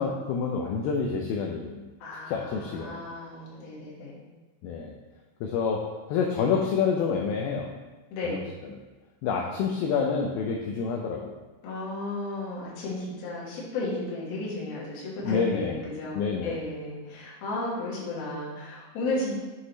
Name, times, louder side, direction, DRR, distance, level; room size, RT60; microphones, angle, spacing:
voice 1, 0.0-1.9 2.3-3.1 4.6-5.0 5.4-7.8 8.2-8.7 9.2-11.3 15.2-15.8 16.1-16.6, left 5 dB, 90° left, 2 dB, 2.1 m, -28 dB
voice 2, 2.0-4.3 8.1-8.4 11.6-19.4, left 2 dB, 65° left, -6 dB, 3.1 m, -34 dB
7.7 x 6.0 x 3.1 m, 1.2 s
omnidirectional pair, 5.0 m